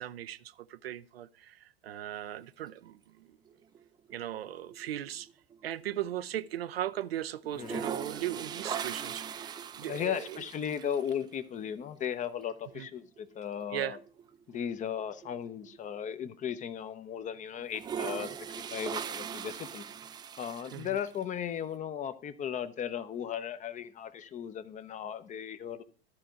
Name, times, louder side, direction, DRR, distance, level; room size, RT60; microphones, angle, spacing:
voice 1, 0.0-3.4 4.1-5.3 5.6-10.4 12.8-12.9 13.7-14.0 20.7-21.0, right 12 dB, 75° right, 0.6 m, -38 dB
sound 1, 3.5-4.3 4.6-6.6 6.8-6.9 7.4-11.2 12.6-12.7 13.2-13.3 13.6-16.0 16.5-16.6 17.6-21.2, right 8 dB, 15° right, 0.4 m, -40 dB
voice 2, 9.8-14.0 14.5-19.8 20.4-25.8, left 8 dB, 25° left, 0.7 m, -36 dB
13.0 x 4.5 x 6.2 m
hypercardioid pair, 90°, 31 cm